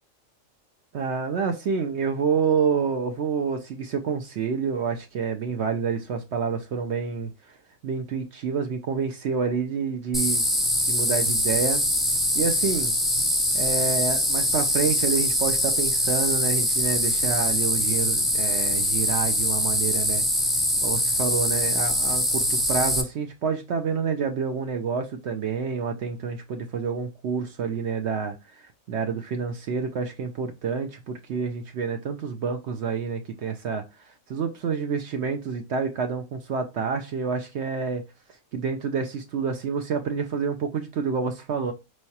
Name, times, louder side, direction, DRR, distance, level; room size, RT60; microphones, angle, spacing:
voice 1, 0.9-7.6 7.8-10.5 10.9-11.8 12.3-13.0 13.5-20.3 20.8-38.1 38.5-41.7, right 5 dB, 65° right, 0.8 m, -28 dB
sound 1, 10.1-23.0, left 1 dB, ahead, 0.4 m, -23 dB
4.6 x 3.2 x 2.7 m
omnidirectional pair, 1.4 m